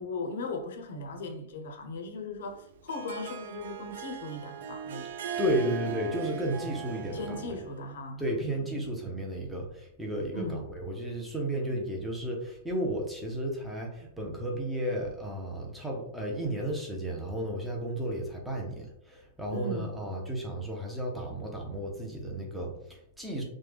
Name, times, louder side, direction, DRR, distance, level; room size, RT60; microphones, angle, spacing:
voice 1, 0.0-5.1 7.1-8.7 10.3-10.7 19.5-20.0, left 2 dB, 70° left, 0.6 m, -38 dB
Harp, 2.5-7.8, right 8 dB, 60° right, 0.3 m, -39 dB
voice 2, 5.4-7.4 8.2-23.4, right 1 dB, ahead, 0.5 m, -33 dB
3.2 x 2.1 x 3.2 m
supercardioid pair, 175°, 0 cm